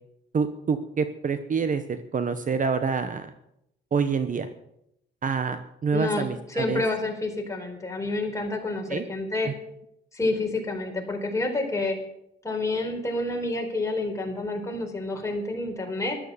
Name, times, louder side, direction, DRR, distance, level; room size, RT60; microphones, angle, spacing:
voice 1, 0.3-3.3 3.9-4.5 5.2-6.8 8.9-9.0 9.5-9.6, right 5 dB, 40° right, 10 dB, 1.1 m, -27 dB
voice 2, 5.9-9.5 10.1-12.0 12.4-16.2, left 2 dB, 15° left, 1 dB, 4.4 m, -29 dB
13.5 x 12.0 x 7.1 m, 0.78 s
cardioid pair, 90°, 20 cm